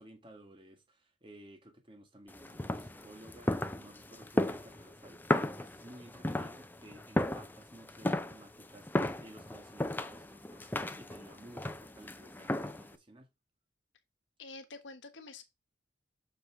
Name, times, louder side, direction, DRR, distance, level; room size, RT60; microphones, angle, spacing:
voice 1, 0.0-13.3, right 1 dB, 25° right, 1.7 m, -54 dB
sound 1, 2.3-13.0, left 1 dB, 10° left, 0.5 m, -35 dB
voice 2, 14.4-15.4, left 3 dB, 75° left, 1.2 m, -47 dB
6.8 x 4.5 x 4.8 m
head